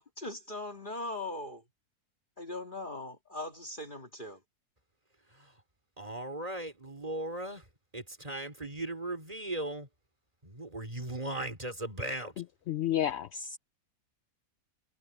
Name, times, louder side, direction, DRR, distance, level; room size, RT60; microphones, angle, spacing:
voice 1, 0.0-1.6 2.4-4.4, left 2 dB, 30° left, 1.9 m, -40 dB
voice 2, 6.0-7.7 7.9-9.9 10.4-12.3, right 1 dB, 25° right, 3.8 m, -37 dB
voice 3, 12.7-13.6, left 11 dB, 70° left, 0.6 m, -31 dB
omnidirectional pair, 1.6 m